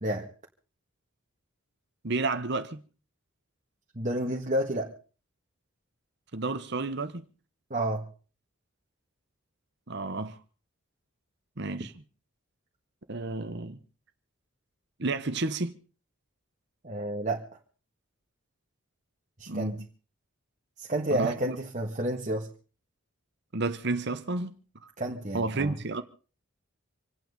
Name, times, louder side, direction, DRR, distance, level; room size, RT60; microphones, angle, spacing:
voice 1, 2.0-2.8 6.3-7.2 9.9-10.4 11.6-11.9 13.1-13.8 15.0-15.7 19.5-19.8 21.1-21.6 23.5-24.6 25.3-26.0, right 3 dB, 55° right, 1.1 m, -31 dB
voice 2, 3.9-4.9 7.7-8.1 16.8-17.5 19.4-19.7 20.8-22.5 25.0-25.7, right 1 dB, 35° right, 1.7 m, -30 dB
27.0 x 9.2 x 5.3 m
head